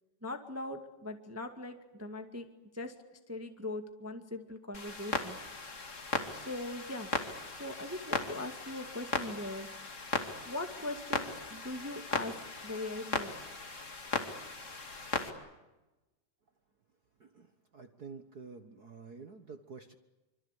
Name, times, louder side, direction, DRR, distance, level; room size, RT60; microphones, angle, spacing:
voice 1, 0.2-2.5 2.7-2.9 3.3-5.4 6.3-7.1 7.5-9.7 10.4-12.3 12.6-13.4, left 2 dB, 5° right, 6 dB, 1.4 m, -40 dB
Clock, 4.7-15.3, left 3 dB, 25° left, 2.4 m, -37 dB
voice 2, 17.7-19.9, right 5 dB, 50° right, 8 dB, 1.1 m, -48 dB
26.5 x 25.5 x 8.4 m, 1.1 s
omnidirectional pair, 3.5 m